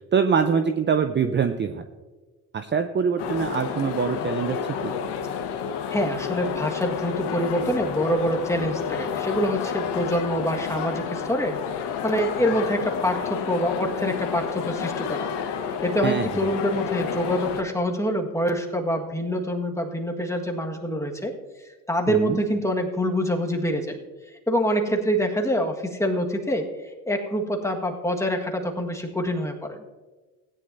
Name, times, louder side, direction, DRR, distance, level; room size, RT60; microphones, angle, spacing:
voice 1, 0.1-1.9 2.5-5.0 16.0-16.5 22.1-22.4, right 6 dB, 25° right, 8 dB, 0.7 m, -24 dB
sound 1, 3.2-17.6, left 7 dB, 65° left, 1.4 m, -30 dB
voice 2, 5.9-11.6 12.0-15.3 15.8-21.3 21.9-24.0 24.5-26.6 27.1-29.8, equal, 5° left, 3 dB, 1.6 m, -25 dB
16.5 x 9.9 x 2.7 m, 1.3 s
hypercardioid pair, 60°, 45 cm